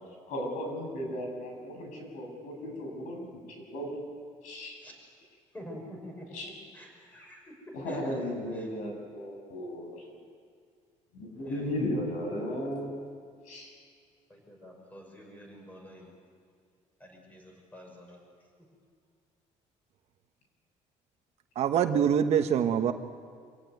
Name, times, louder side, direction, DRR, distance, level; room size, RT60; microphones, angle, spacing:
voice 1, 0.3-3.3 3.7-3.9 4.4-4.8 6.3-6.5 7.7-10.1 11.1-13.0 13.4-13.7, equal, 75° left, 1 dB, 7.7 m, -35 dB
voice 2, 5.5-7.5 7.9-8.0 8.5-8.7 11.5-11.7 14.3-16.1 17.0-18.2, equal, 10° left, 0 dB, 5.9 m, -48 dB
voice 3, 21.5-22.9, right 8 dB, 55° right, 7 dB, 1.3 m, -24 dB
26.5 x 17.0 x 9.3 m, 2.1 s
cardioid pair, 155°, 13 cm